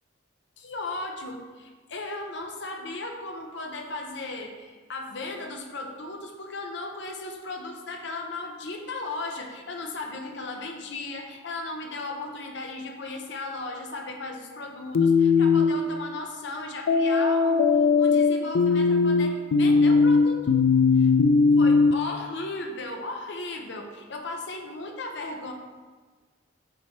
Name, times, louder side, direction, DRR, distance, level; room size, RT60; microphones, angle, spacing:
voice 1, 0.6-20.6 20.9-21.1 21.6-25.5, left 2 dB, 60° left, 3 dB, 0.8 m, -36 dB
sound 1, 14.9-15.8 16.9-21.9, left 4 dB, 80° left, 0.4 m, -19 dB
7.3 x 3.4 x 4.1 m, 1.4 s
head